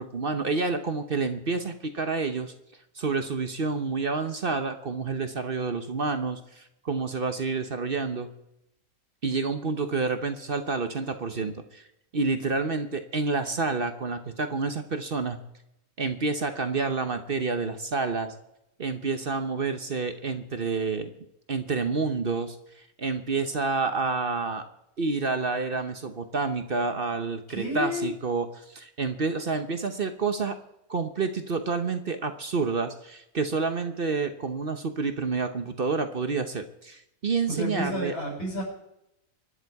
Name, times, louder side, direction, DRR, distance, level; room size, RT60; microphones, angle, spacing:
voice 1, 0.0-2.5 3.0-8.3 9.2-11.8 12.1-15.4 16.0-18.3 18.8-21.1 21.5-24.6 25.0-30.6 30.9-38.1, right 4 dB, 45° right, 8 dB, 1.0 m, -29 dB
voice 2, 27.5-28.1 37.5-38.6, equal, 90° left, -3 dB, 7.4 m, -30 dB
24.0 x 11.0 x 4.7 m, 0.83 s
omnidirectional pair, 1.6 m